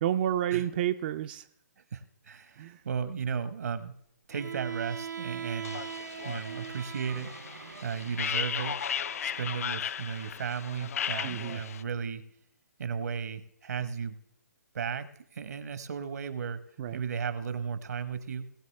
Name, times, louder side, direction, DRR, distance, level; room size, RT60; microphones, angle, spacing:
voice 1, 0.0-1.4 2.6-2.8 11.2-11.6 16.8-17.0, right 11 dB, 30° right, 9 dB, 0.4 m, -30 dB
voice 2, 1.9-4.0 4.3-5.8 6.2-7.3 7.8-8.8 9.2-12.2 12.8-14.2 14.7-16.6 16.9-18.5, right 6 dB, 65° right, 12 dB, 1.0 m, -35 dB
Bowed string instrument, 4.3-9.5, right 7 dB, 90° right, 0.5 m, -41 dB
sound 1, 5.6-11.8, left 8 dB, 55° left, 0.4 m, -36 dB
19.0 x 7.7 x 3.2 m, 0.70 s
hypercardioid pair, 145°, 9 cm